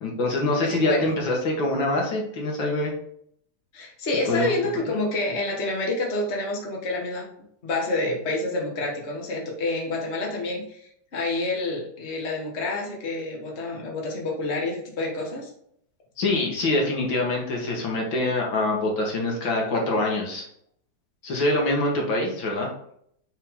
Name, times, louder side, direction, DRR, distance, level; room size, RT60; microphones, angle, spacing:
voice 1, 0.0-2.9 4.3-4.5 16.2-20.5 21.2-22.7, left 2 dB, 70° left, -1 dB, 2.3 m, -24 dB
voice 2, 0.6-1.1 3.7-7.3 7.6-10.8 11.1-15.5, left 2 dB, 35° left, -1 dB, 1.6 m, -28 dB
5.7 x 5.5 x 3.7 m, 0.68 s
omnidirectional pair, 2.2 m